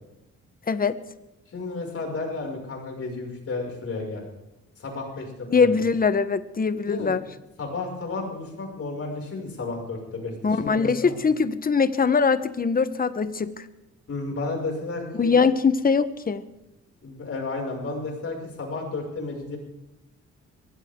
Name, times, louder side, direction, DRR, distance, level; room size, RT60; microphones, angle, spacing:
voice 1, 0.7-1.0 5.5-7.2 10.4-13.6 15.1-16.4, left 5 dB, 30° left, 13 dB, 1.1 m, -22 dB
voice 2, 1.5-4.2 4.8-5.8 6.9-7.2 7.6-11.1 14.1-15.3 17.0-19.6, left 3 dB, 50° left, 0 dB, 6.3 m, -32 dB
23.5 x 16.0 x 3.8 m, 0.95 s
cardioid pair, 90°, 30 cm